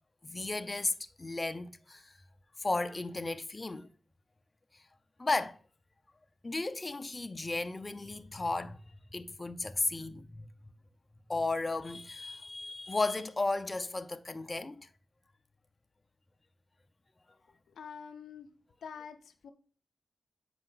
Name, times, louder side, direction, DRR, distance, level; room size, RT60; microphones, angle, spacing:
voice 1, 0.2-2.1 2.6-3.9 5.2-5.6 6.4-8.8 9.1-10.5 11.3-14.9, left 2 dB, 30° left, 0.5 m, -34 dB
voice 2, 17.7-18.5 18.8-19.5, left 6 dB, 90° left, 0.6 m, -46 dB
7.8 x 5.4 x 3.9 m
cardioid pair, 55°, 0 cm